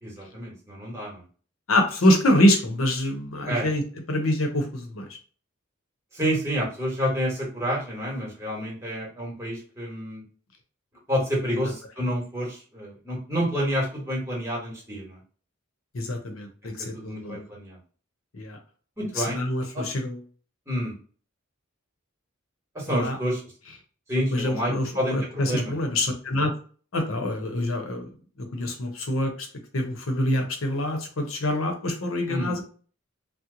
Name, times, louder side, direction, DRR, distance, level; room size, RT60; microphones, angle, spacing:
voice 1, 0.0-1.2 3.5-3.7 6.1-10.2 11.1-15.2 16.9-17.8 19.0-19.4 19.7-19.8 20.7-20.9 22.7-23.4 24.1-25.7 32.3-32.5, equal, 15° right, -3 dB, 1.2 m, -29 dB
voice 2, 1.7-3.8 4.1-5.0 11.6-11.7 15.9-17.4 18.3-18.6 19.2-20.2 22.9-23.2 24.3-26.5 26.9-28.1 28.4-29.5 29.7-32.6, left 1 dB, 85° left, 3 dB, 0.8 m, -25 dB
2.9 x 2.1 x 3.7 m, 0.40 s
head